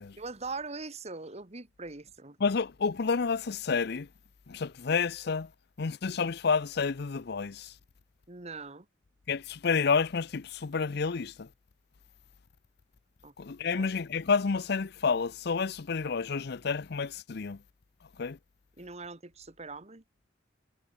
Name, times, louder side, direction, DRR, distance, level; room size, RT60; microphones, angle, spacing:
voice 1, 0.2-2.4 8.3-8.9 13.2-13.3 13.7-13.9 18.8-20.0, right 3 dB, 35° right, 1.8 m, -41 dB
voice 2, 2.4-4.1 4.5-5.5 5.8-7.7 9.3-11.5 13.4-17.6 18.2-18.4, left 5 dB, 60° left, 0.6 m, -29 dB
head